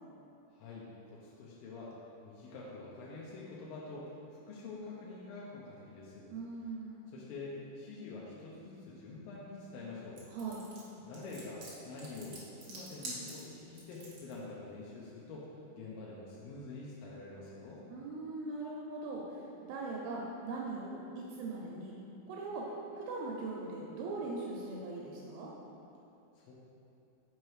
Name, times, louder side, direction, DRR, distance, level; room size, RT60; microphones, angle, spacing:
voice 1, 0.5-1.9 2.2-6.3 7.1-10.2 10.9-15.5 15.8-17.8 26.4-26.5, left 3 dB, 85° left, -6 dB, 2.6 m, -46 dB
voice 2, 6.3-7.0 10.3-10.6 17.9-19.4 19.7-21.9 22.3-22.6 22.9-25.5, right 3 dB, 85° right, -3 dB, 2.5 m, -40 dB
sound 1, 10.2-14.3, right 2 dB, 60° right, 1.5 m, -47 dB
6.0 x 4.6 x 4.7 m, 2.8 s
omnidirectional pair, 4.1 m